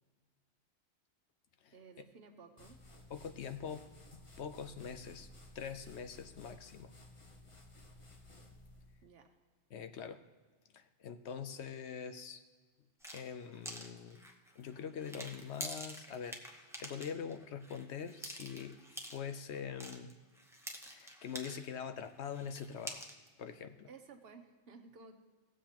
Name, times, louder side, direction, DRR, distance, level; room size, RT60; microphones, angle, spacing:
voice 1, 1.7-2.8 9.0-9.3 23.9-25.2, right 4 dB, 60° right, 4 dB, 1.2 m, -55 dB
sound 1, 2.6-9.1, left 1 dB, 30° left, 0.9 m, -57 dB
voice 2, 3.1-3.9 4.1-5.3 5.5-6.9 9.7-10.2 10.7-12.4 13.1-14.2 14.6-18.7 19.1-20.2 20.9-23.0 23.4-23.9, left 7 dB, 70° left, 9 dB, 0.9 m, -44 dB
sound 2, 13.0-21.7 22.0-23.3, right 1 dB, 5° right, 0.8 m, -48 dB
17.0 x 7.5 x 2.9 m, 1.4 s
omnidirectional pair, 1.2 m